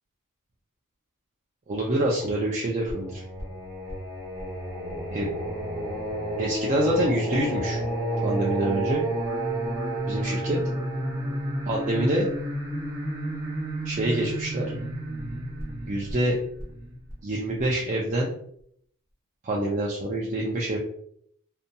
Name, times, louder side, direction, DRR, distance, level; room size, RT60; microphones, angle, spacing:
voice 1, 1.7-3.2 5.1-5.3 6.4-7.8 8.2-9.0 10.0-10.6 11.7-12.3 13.8-14.7 15.9-16.4 17.2-18.3 19.4-20.8, right 1 dB, 35° right, -3 dB, 0.4 m, -26 dB
Singing, 2.9-17.6, right 1 dB, 15° right, 0.9 m, -31 dB
2.6 x 2.6 x 2.2 m, 0.66 s
head